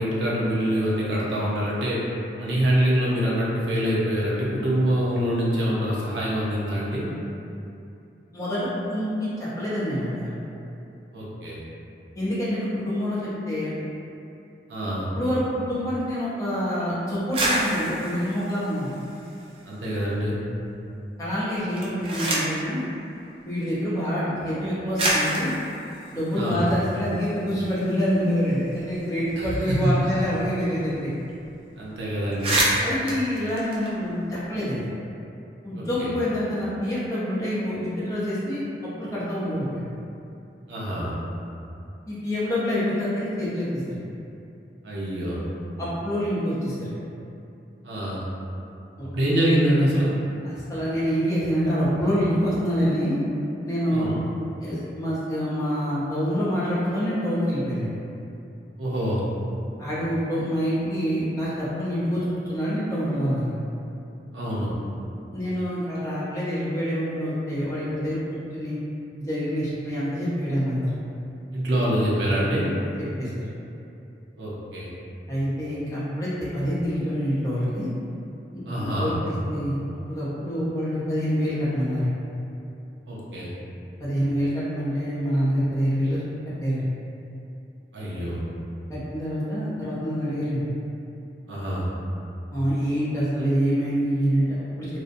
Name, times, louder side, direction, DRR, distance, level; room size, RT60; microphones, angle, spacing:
voice 1, 0.0-2.1 2.4-7.0 11.1-11.6 14.7-15.1 19.7-20.4 26.3-26.7 29.4-30.2 31.8-32.6 35.8-36.1 40.7-41.2 44.8-45.4 47.8-48.3 49.1-50.1 53.9-54.2 58.8-59.2 64.3-64.7 71.5-72.7 74.4-74.9 78.7-79.1 83.1-83.5 87.9-88.4 91.5-91.9, equal, 80° right, -6 dB, 0.6 m, -25 dB
voice 2, 8.3-10.3 12.1-13.7 15.1-18.9 21.2-22.8 23.4-25.5 26.1-31.1 32.8-34.9 35.6-38.6 39.0-39.8 42.1-44.0 45.8-47.0 49.0-49.1 50.4-53.2 53.6-54.1 54.6-57.9 59.8-63.6 65.3-68.2 68.5-68.8 69.3-70.9 73.2-73.4 75.3-77.9 78.5-79.8 80.1-82.1 84.0-86.2 86.6-86.8 88.9-90.6 92.5-94.9, equal, 20° left, -11 dB, 0.6 m, -26 dB
sound 1, 17.2-19.7 20.1-20.8 21.6-22.7 23.7-23.8 24.5-24.6 25.0-27.3 27.6-27.7 28.0-30.6 30.9-31.0 31.3-31.5 31.9-32.0 32.2-34.4, right 1 dB, 30° right, 0.4 m, -28 dB
2.5 x 2.1 x 2.5 m, 2.7 s
head